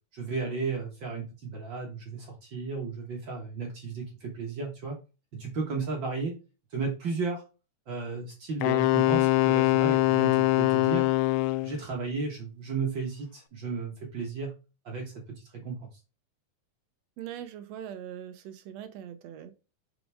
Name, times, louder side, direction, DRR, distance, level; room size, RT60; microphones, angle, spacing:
voice 1, 0.1-5.0 5.3-6.3 6.7-7.4 7.9-11.1 11.6-14.5 14.9-15.9, right 4 dB, 45° right, 0 dB, 1.7 m, -34 dB
Wind instrument woodwind instrument, 8.6-11.8, left 18 dB, 80° left, 1.9 m, -23 dB
voice 2, 17.2-19.5, right 10 dB, 75° right, 9 dB, 1.6 m, -41 dB
6.1 x 5.0 x 3.5 m, 0.31 s
omnidirectional pair, 3.7 m